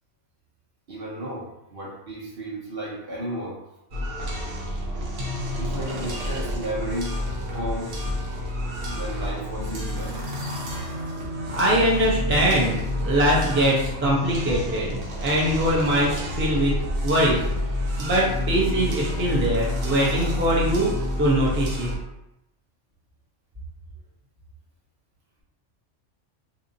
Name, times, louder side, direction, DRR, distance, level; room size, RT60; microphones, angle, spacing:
voice 1, 0.9-3.6 5.6-7.1 7.5-7.9 8.9-10.2, right 1 dB, 55° right, -3 dB, 0.9 m, -33 dB
sound 1, 3.9-22.0, left 1 dB, 80° right, 1.2 m, -29 dB
voice 2, 11.5-16.7 17.0-17.4 18.0-20.9 21.2-21.9, right 1 dB, 15° right, -4 dB, 0.6 m, -22 dB
4.0 x 2.7 x 2.7 m, 0.87 s
omnidirectional pair, 1.3 m